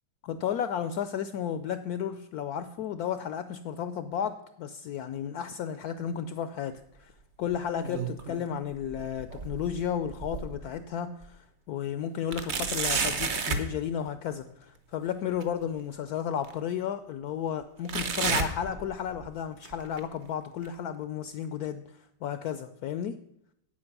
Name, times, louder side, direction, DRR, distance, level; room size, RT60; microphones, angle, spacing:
voice 1, 0.2-7.1 7.4-21.8 22.2-23.2, left 8 dB, 70° left, 11 dB, 1.0 m, -33 dB
sound 1, 7.5-8.5 8.8-10.7 11.2-11.3 12.3-13.7 15.4-15.5 16.4-16.5 17.9-19.3 19.6-20.0 20.6-20.7 21.6-21.7, right 5 dB, 45° right, 1.1 m, -32 dB
8.8 x 8.5 x 5.9 m, 0.76 s
omnidirectional pair, 1.9 m